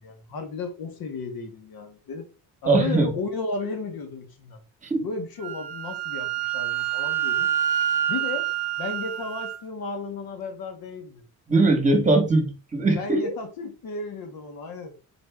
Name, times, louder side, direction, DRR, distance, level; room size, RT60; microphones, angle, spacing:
voice 1, 0.0-2.3 2.6-4.6 4.9-7.5 8.1-8.5 8.8-11.2 13.0-14.9, left 4 dB, 60° left, 1.2 m, -34 dB
voice 2, 2.6-3.1 4.9-5.1 11.5-13.3, right 2 dB, 20° right, 1.2 m, -20 dB
Wind instrument woodwind instrument, 5.4-9.6, right 11 dB, 75° right, 0.7 m, -27 dB
4.0 x 2.7 x 3.5 m
cardioid pair, 95°, 39 cm